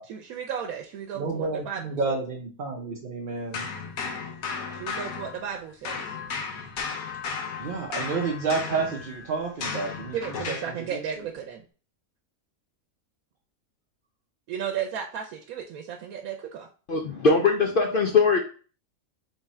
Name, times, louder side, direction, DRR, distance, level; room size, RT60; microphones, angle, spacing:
voice 1, 0.0-2.2 4.7-6.2 10.1-11.6 14.5-16.7, right 8 dB, 85° right, 4 dB, 1.1 m, -34 dB
voice 2, 1.1-3.7 7.6-10.2 10.5-10.6 10.9-11.0, right 4 dB, 45° right, -1 dB, 0.8 m, -30 dB
sound 1, 3.5-5.6 5.8-10.8, left 5 dB, 80° left, 1.2 m, -35 dB
voice 3, 16.9-18.4, left 4 dB, 60° left, 3 dB, 0.5 m, -21 dB
3.5 x 3.4 x 4.2 m, 0.39 s
omnidirectional pair, 1.5 m